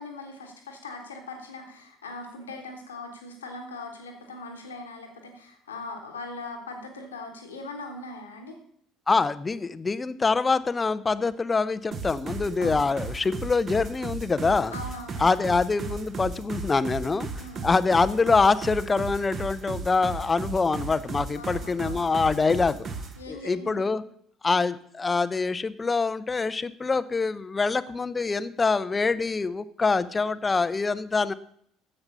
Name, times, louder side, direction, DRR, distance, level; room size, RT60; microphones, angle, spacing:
voice 1, 0.0-8.6 12.6-12.9 14.7-15.4 17.4-17.8 21.3-22.2 23.2-23.9, left 2 dB, 80° left, 4 dB, 1.3 m, -40 dB
voice 2, 9.1-14.7 15.2-17.3 17.6-22.9 23.3-24.0 24.4-31.3, left 4 dB, 25° left, 15 dB, 0.6 m, -25 dB
sound 1, 11.9-23.2, right 4 dB, 40° right, 1.5 m, -35 dB
10.5 x 7.8 x 5.4 m, 0.66 s
figure-of-eight pair, 55°, 0 cm